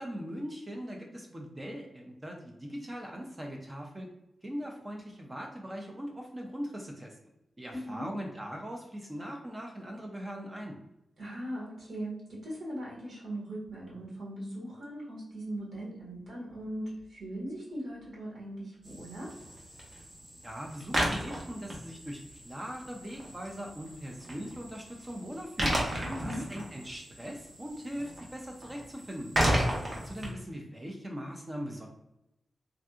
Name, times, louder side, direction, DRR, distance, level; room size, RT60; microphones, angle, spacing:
voice 1, 0.0-4.1 4.4-7.2 7.6-10.8 20.4-25.8 26.2-29.3 30.0-31.9, equal, 20° right, 1 dB, 0.4 m, -40 dB
voice 2, 7.7-8.1 11.2-19.3 26.1-26.4, right 1 dB, 80° right, -5 dB, 1.5 m, -39 dB
sound 1, 18.8-30.3, right 1 dB, 40° right, 0.8 m, -34 dB
3.5 x 2.6 x 2.3 m, 0.86 s
wide cardioid pair, 160°, 0 cm